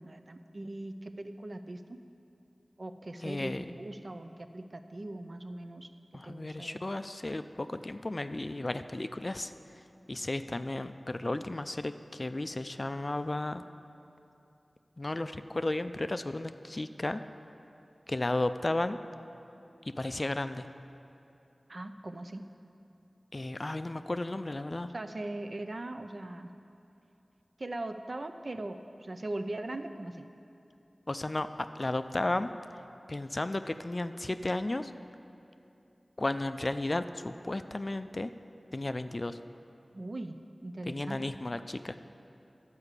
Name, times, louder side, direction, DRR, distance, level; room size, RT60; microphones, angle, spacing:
voice 1, 0.0-2.0 2.8-5.9 6.2-6.8 21.7-22.5 24.9-26.5 27.6-30.3 39.9-41.3, right 2 dB, 55° right, 7 dB, 0.5 m, -40 dB
voice 2, 3.2-3.6 6.1-9.5 10.1-13.6 15.0-17.2 18.1-19.0 19.9-20.7 23.3-24.9 31.1-31.5 31.8-32.5 33.1-34.9 36.2-38.3 38.7-39.4 40.9-42.0, left 2 dB, 40° left, 10 dB, 0.3 m, -34 dB
11.5 x 4.9 x 8.1 m, 2.8 s
wide cardioid pair, 65°, 0 cm